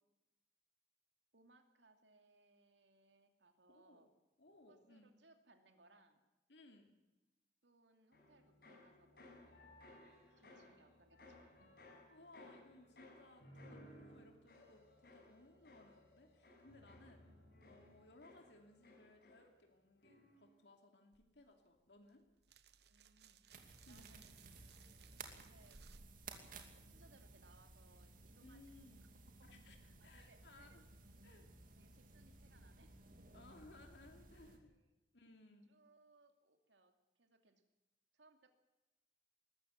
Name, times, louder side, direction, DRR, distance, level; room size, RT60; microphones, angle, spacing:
voice 1, 1.3-4.1 4.7-6.2 7.6-9.6 10.4-11.8 17.2-17.9 22.8-23.4 23.9-24.4 25.3-25.8 26.4-28.6 29.4-30.8 31.8-33.0 33.3-33.4 34.4-35.0 35.7-37.6 38.1-38.5, right 2 dB, 90° right, 6 dB, 2.7 m, -70 dB
voice 2, 3.7-4.1 4.4-5.1 6.5-6.9 10.2-10.6 12.1-17.3 17.7-22.2 23.8-24.1 28.4-29.0 29.4-29.8 30.0-30.8 31.2-31.5 33.3-34.7 35.1-35.7, left 2 dB, 75° left, 3 dB, 2.8 m, -63 dB
sound 1, 8.1-19.7 20.0-20.5, left 1 dB, 60° left, 7.0 m, -61 dB
sound 2, 21.1-27.4, right 5 dB, 65° right, 1.0 m, -66 dB
sound 3, 23.5-34.6, right 3 dB, 50° right, 2.6 m, -58 dB
21.0 x 13.5 x 9.4 m, 1.0 s
head